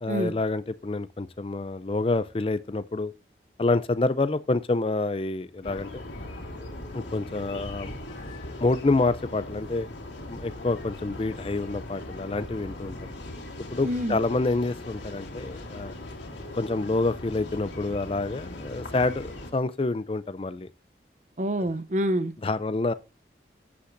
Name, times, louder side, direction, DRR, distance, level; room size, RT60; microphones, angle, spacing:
voice 1, 0.0-3.1 3.6-6.0 6.9-7.9 8.6-9.9 10.3-12.9 13.7-15.9 16.5-20.7 22.4-22.9, left 2 dB, 30° left, 0.4 m, -27 dB
sound 1, 5.6-19.5, left 1 dB, 85° left, 2.4 m, -39 dB
voice 2, 13.8-14.2 21.4-22.3, right 1 dB, 40° right, 0.6 m, -27 dB
14.0 x 8.6 x 2.6 m
head